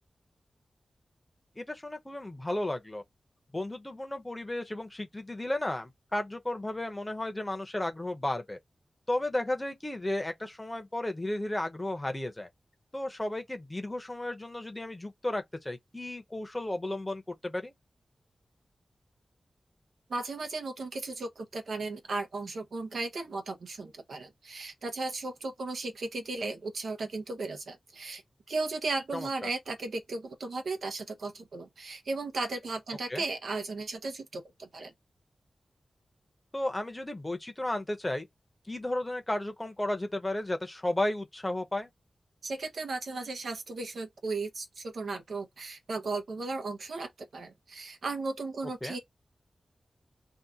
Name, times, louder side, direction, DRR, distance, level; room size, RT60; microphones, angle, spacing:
voice 1, 1.6-3.0 3.5-8.6 9.1-12.5 12.9-17.7 29.1-29.3 33.1-33.2 36.5-38.3 38.7-41.9 48.8-49.0, left 1 dB, 15° left, 0.7 m, -33 dB
voice 2, 20.1-28.2 28.5-34.9 42.4-49.0, right 3 dB, 90° right, 0.8 m, -36 dB
2.7 x 2.4 x 3.5 m
wide cardioid pair, 105°, 0 cm